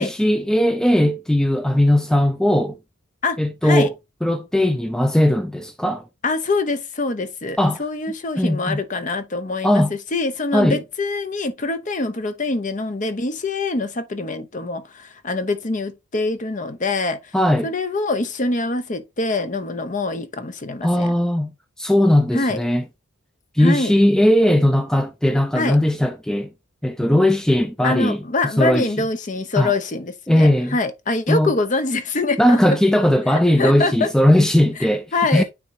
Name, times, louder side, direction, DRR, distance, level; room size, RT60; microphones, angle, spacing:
voice 1, 0.0-2.8 3.4-3.9 4.2-6.0 7.6-7.8 8.4-8.8 9.6-9.9 10.5-10.8 17.3-17.7 20.8-21.5 21.8-22.8 23.5-26.5 26.8-28.2 28.6-28.9 29.6-29.7 30.3-30.8 31.3-31.5 32.4-35.1 35.3-35.4, left 1 dB, 5° left, 0.3 m, -18 dB
voice 2, 3.2-3.9 6.2-17.3 17.6-21.1 22.3-22.6 23.6-23.9 25.5-25.8 27.8-32.8 33.3-34.1 35.1-35.4, left 3 dB, 35° left, 0.7 m, -24 dB
9.5 x 3.6 x 2.7 m
head